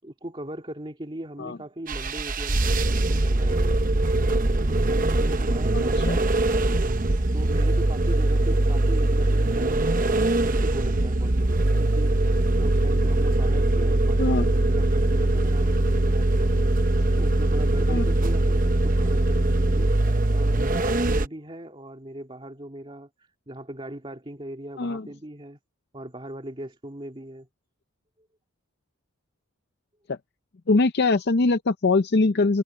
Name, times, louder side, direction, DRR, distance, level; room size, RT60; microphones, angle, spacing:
voice 1, 0.0-3.9 4.6-6.8 7.3-12.2 12.6-16.5 17.2-20.0 20.3-25.6 25.9-27.5 28.2-28.3, right 1 dB, 25° right, 2.3 m, -39 dB
sound 1, 1.9-21.3, right 2 dB, 40° right, 0.8 m, -22 dB
voice 2, 5.7-6.2 14.2-14.5 17.9-18.0 24.8-25.1 30.1-30.2 30.7-32.6, left 3 dB, 50° left, 0.6 m, -22 dB
head